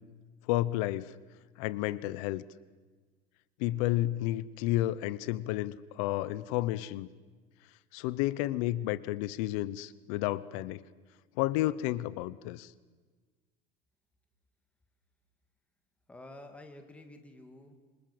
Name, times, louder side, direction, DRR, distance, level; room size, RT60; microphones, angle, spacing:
voice 1, 0.5-1.1 1.6-2.4 3.6-7.1 7.9-10.8 11.4-12.7, left 16 dB, 90° left, 19 dB, 0.9 m, -31 dB
voice 2, 16.1-17.7, left 1 dB, 5° left, 6 dB, 2.1 m, -50 dB
27.5 x 26.0 x 7.8 m, 1.4 s
cardioid pair, 175°, 17 cm